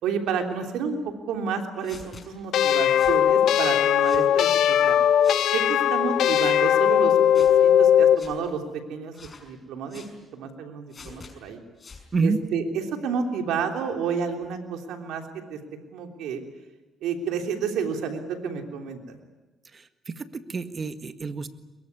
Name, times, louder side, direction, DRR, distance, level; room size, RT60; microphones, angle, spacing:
voice 1, 0.0-5.0 5.5-9.1 9.4-10.0 10.3-11.6 12.2-15.2 15.5-15.6 15.9-16.4 17.0-19.2, right 6 dB, 85° right, 4 dB, 3.4 m, -30 dB
sound 1, 1.8-2.3 2.9-3.2 4.0-4.3 5.2-5.4 6.2-6.6 7.3-7.6 8.2-8.3 9.1-9.5 9.9-10.1 10.9-11.3 11.8-12.1, left 4 dB, 35° left, 5.7 m, -46 dB
sound 2, 2.5-8.2, left 9 dB, 75° left, 0.8 m, -19 dB
voice 2, 19.7-21.5, right 4 dB, 35° right, 10 dB, 1.7 m, -28 dB
22.5 x 22.0 x 9.8 m, 1.1 s
cardioid pair, 90°, 0 cm